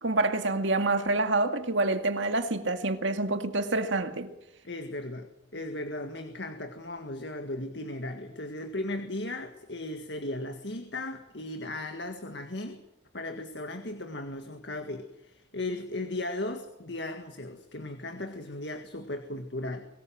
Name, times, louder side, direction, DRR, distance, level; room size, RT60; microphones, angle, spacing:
voice 1, 0.0-4.3, right 2 dB, 75° right, 2.1 m, -27 dB
voice 2, 4.6-12.8 13.1-19.9, left 2 dB, 60° left, 1.9 m, -36 dB
24.0 x 19.0 x 7.7 m
head